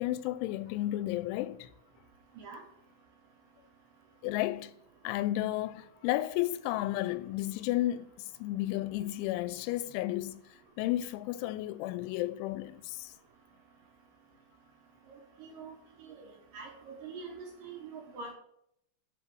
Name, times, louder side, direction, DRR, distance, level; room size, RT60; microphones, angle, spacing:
voice 1, 0.0-1.7 4.2-4.8 5.0-8.1 8.4-10.4 10.8-13.1, left 15 dB, 90° left, 2.9 m, -32 dB
voice 2, 15.4-15.7 16.0-18.3, right 4 dB, 70° right, 2.2 m, -45 dB
11.0 x 4.4 x 6.1 m
omnidirectional pair, 5.3 m